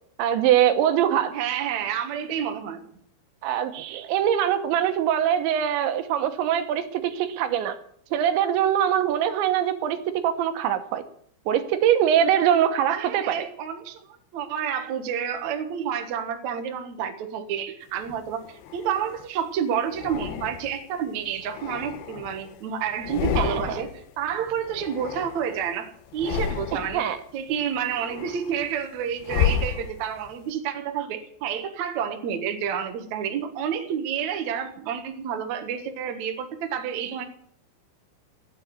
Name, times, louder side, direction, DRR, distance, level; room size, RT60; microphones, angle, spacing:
voice 1, 0.2-1.3 3.4-7.8 8.1-10.0 10.2-11.0 11.5-13.5 23.4-23.8 26.9-27.2, right 10 dB, 75° right, 8 dB, 3.0 m, -23 dB
voice 2, 1.3-2.9 12.9-14.0 14.3-27.1 27.3-37.2, right 8 dB, 90° right, 5 dB, 1.6 m, -29 dB
sound 1, 18.0-19.3 19.9-20.9 21.4-22.6 22.9-24.0 24.3-25.7 26.1-27.1 27.6-30.3, left 9 dB, 85° left, 2.2 m, -31 dB
15.5 x 8.3 x 9.4 m, 0.64 s
omnidirectional pair, 5.9 m